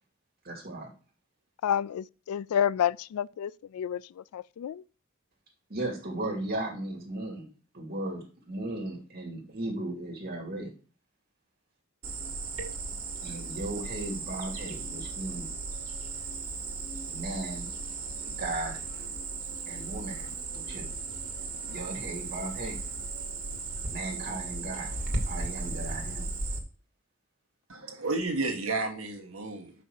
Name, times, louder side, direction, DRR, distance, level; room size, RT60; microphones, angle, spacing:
voice 1, 0.4-0.9 5.7-10.7 13.2-15.5 17.1-17.7 18.2-18.8 19.7-20.9 21.7-22.8 23.9-24.9 25.3-26.3, right 2 dB, 45° right, 2.6 m, -36 dB
voice 2, 1.6-4.8, left 9 dB, 80° left, 0.3 m, -30 dB
Cricket, 12.0-26.6, right 3 dB, 90° right, 1.9 m, -36 dB
voice 3, 27.7-29.7, right 3 dB, 70° right, 1.6 m, -32 dB
5.8 x 5.5 x 6.3 m
head